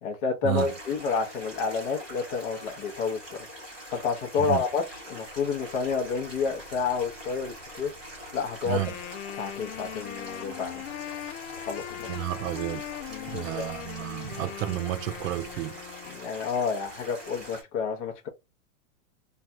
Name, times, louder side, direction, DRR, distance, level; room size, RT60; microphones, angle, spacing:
voice 1, 0.0-3.2 3.9-7.9 8.3-8.8 9.4-10.8 11.6-12.1 13.1-13.7 16.1-18.3, left 5 dB, 40° left, 0.7 m, -29 dB
Stream, 0.5-17.6, equal, 5° right, 0.3 m, -44 dB
sound 1, 5.2-15.6, right 3 dB, 25° right, 0.8 m, -54 dB
Wind instrument woodwind instrument, 8.6-16.4, left 13 dB, 90° left, 0.5 m, -40 dB
voice 2, 12.1-12.8 13.3-15.8, right 15 dB, 70° right, 0.5 m, -31 dB
3.2 x 2.3 x 2.5 m
supercardioid pair, 165°, 41 cm